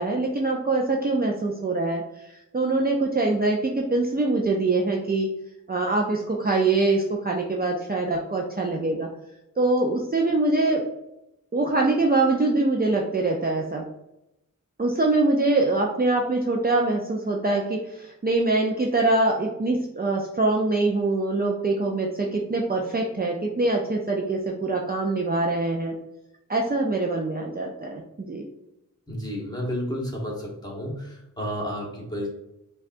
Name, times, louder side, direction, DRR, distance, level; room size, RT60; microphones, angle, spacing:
voice 1, 0.0-5.3 5.7-9.1 9.6-10.8 11.5-13.8 14.8-25.9 26.5-28.5, right 2 dB, 30° right, -1 dB, 0.5 m, -24 dB
voice 2, 29.1-32.3, equal, 15° left, -2 dB, 1.2 m, -31 dB
5.1 x 2.3 x 2.5 m, 0.88 s
wide cardioid pair, 70°, 31 cm